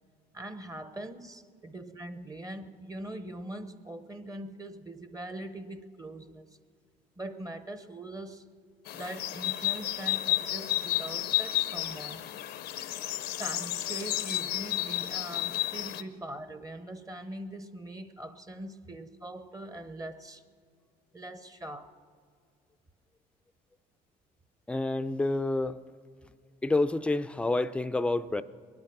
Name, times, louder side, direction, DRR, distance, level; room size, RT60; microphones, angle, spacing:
voice 1, 0.3-6.5 7.2-8.5 8.9-12.3 13.4-20.4 21.1-21.9, right 1 dB, 20° right, 11 dB, 0.9 m, -42 dB
sound 1, 8.9-16.0, left 14 dB, 75° left, 0.7 m, -32 dB
voice 2, 24.7-25.8 26.6-28.4, left 2 dB, 5° left, 11 dB, 0.5 m, -28 dB
21.5 x 9.6 x 5.9 m, 2.1 s
cardioid pair, 95°, 17 cm